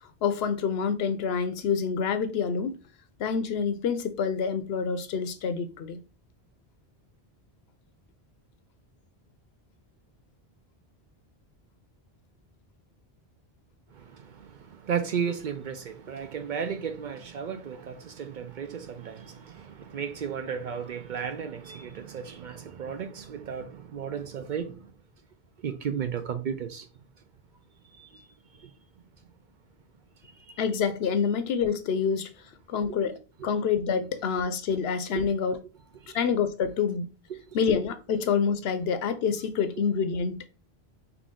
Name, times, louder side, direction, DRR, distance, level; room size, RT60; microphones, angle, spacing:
voice 1, 0.2-2.8 3.2-6.0 30.6-32.3 32.7-35.5 36.1-37.1 37.5-40.5, left 6 dB, 75° left, 0.8 m, -27 dB
voice 2, 13.9-24.8 25.6-26.9 28.0-28.2 28.6-28.7 33.4-33.5 36.0-36.2, right 7 dB, 60° right, 0.6 m, -34 dB
3.9 x 3.0 x 3.7 m
omnidirectional pair, 1.1 m